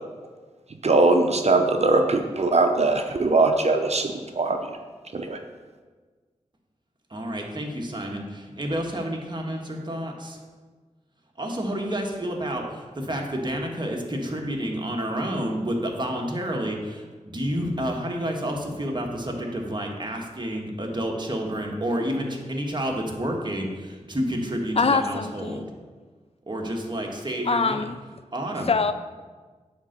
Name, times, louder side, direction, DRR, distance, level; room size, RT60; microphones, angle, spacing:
voice 1, 0.8-4.8 5.1-5.4, right 3 dB, 55° right, 5 dB, 0.7 m, -21 dB
voice 2, 7.1-10.4 11.4-25.7 26.5-27.8 28.3-28.7, equal, 35° right, 1 dB, 1.6 m, -29 dB
voice 3, 24.8-25.7 27.5-28.0 28.7-28.9, left 4 dB, 50° left, 11 dB, 0.5 m, -23 dB
9.0 x 3.8 x 6.6 m, 1.4 s
cardioid pair, 45°, 13 cm